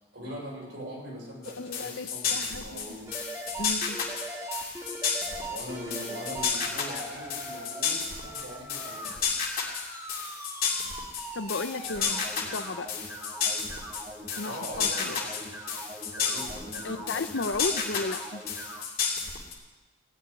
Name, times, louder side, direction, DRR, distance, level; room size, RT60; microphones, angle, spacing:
voice 1, 0.1-3.1 5.3-9.2 11.8-12.5 14.4-15.5 16.2-17.1, equal, 60° right, -3 dB, 5.9 m, -42 dB
sound 1, 1.4-19.5, left 6 dB, 45° left, 2.8 m, -32 dB
voice 2, 1.6-3.0 3.6-4.0 11.3-12.9 14.4-15.2 16.8-18.4, left 3 dB, 60° left, 11 dB, 0.7 m, -34 dB
Content warning, 3.1-18.8, right 1 dB, 10° right, 1.9 m, -41 dB
17.0 x 7.0 x 10.0 m, 1.2 s
head